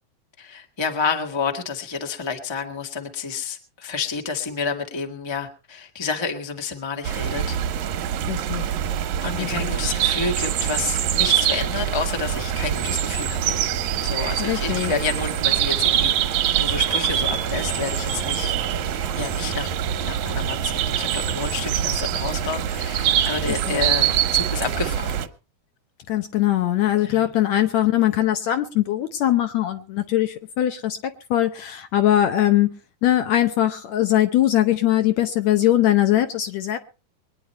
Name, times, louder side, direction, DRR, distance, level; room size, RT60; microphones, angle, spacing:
voice 1, 0.4-7.6 9.2-13.7 14.0-18.5 19.1-19.7 20.0-25.3 27.0-27.3, left 5 dB, 15° left, 4 dB, 1.0 m, -29 dB
sound 1, 7.0-25.3, right 10 dB, 70° right, 2.1 m, -24 dB
voice 2, 8.3-8.7 9.3-9.8 14.4-14.9 23.7-23.8 26.1-32.7 33.0-36.8, left 13 dB, 70° left, 9 dB, 1.9 m, -21 dB
23.0 x 9.9 x 4.3 m, 0.34 s
omnidirectional pair, 3.7 m